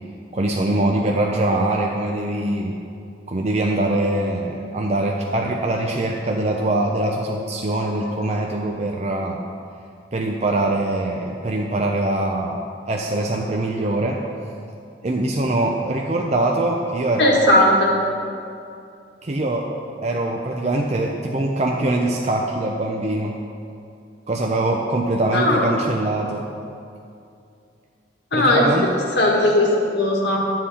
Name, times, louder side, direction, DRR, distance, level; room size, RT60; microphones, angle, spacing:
voice 1, 0.3-2.7 3.3-9.4 10.1-12.6 12.9-14.2 15.0-17.5 19.2-19.6 20.0-23.3 24.3-26.5 28.3-28.9, right 2 dB, 35° right, 0 dB, 0.6 m, -23 dB
voice 2, 17.2-17.9 25.3-25.7 28.3-28.7 29.2-30.5, left 1 dB, 70° left, -2 dB, 1.7 m, -17 dB
11.5 x 7.5 x 4.3 m, 2.5 s
head